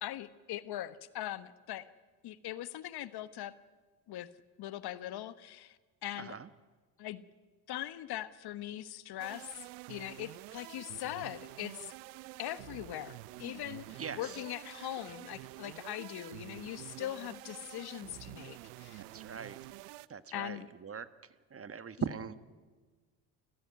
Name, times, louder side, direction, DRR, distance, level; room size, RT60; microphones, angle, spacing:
voice 1, 0.0-1.9 2.2-3.5 4.1-4.3 4.6-5.8 6.0-6.4 7.0-7.2 7.7-9.5 9.9-11.9 12.4-19.0 20.3-20.7, left 13 dB, 55° left, 14 dB, 1.3 m, -41 dB
voice 2, 6.2-6.5 14.0-14.4 14.8-14.9 19.0-19.6 20.1-21.1 21.5-22.4, right 6 dB, 30° right, 13 dB, 1.4 m, -41 dB
sound 1, 9.2-20.1, right 19 dB, 75° right, 0.8 m, -48 dB
28.5 x 16.0 x 9.5 m, 1.4 s
hypercardioid pair, 65°, 47 cm